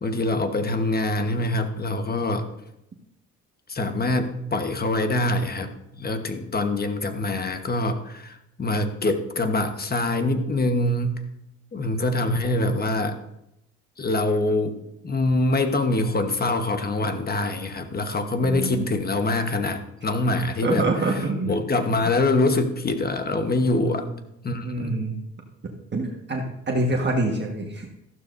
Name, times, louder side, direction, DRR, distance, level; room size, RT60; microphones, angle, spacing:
voice 1, 0.0-2.4 3.7-11.2 11.7-13.2 14.0-14.8 15.0-20.9 21.4-24.0 24.4-25.1, left 2 dB, 30° left, 7 dB, 1.2 m, -24 dB
voice 2, 18.4-18.9 20.6-21.5 22.0-22.1 23.7-24.1 24.6-25.1 25.9-27.9, right 2 dB, 35° right, 0 dB, 1.5 m, -26 dB
14.0 x 12.0 x 2.7 m, 0.85 s
cardioid pair, 90°, 30 cm